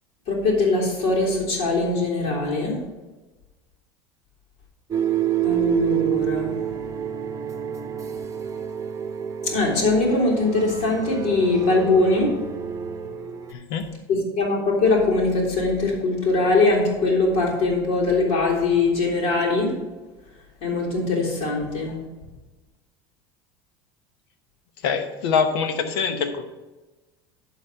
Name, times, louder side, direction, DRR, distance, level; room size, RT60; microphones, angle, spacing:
voice 1, 0.3-2.8 5.4-6.6 9.4-12.4 14.1-19.7 20.6-22.0, left 3 dB, 60° left, -3 dB, 3.4 m, -21 dB
sound 1, 4.9-13.5, right 10 dB, 25° right, 0.9 m, -28 dB
voice 2, 13.5-13.9 24.8-26.4, left 6 dB, 80° left, 9 dB, 1.0 m, -24 dB
11.5 x 4.2 x 5.7 m, 1.2 s
supercardioid pair, 95°, 12 cm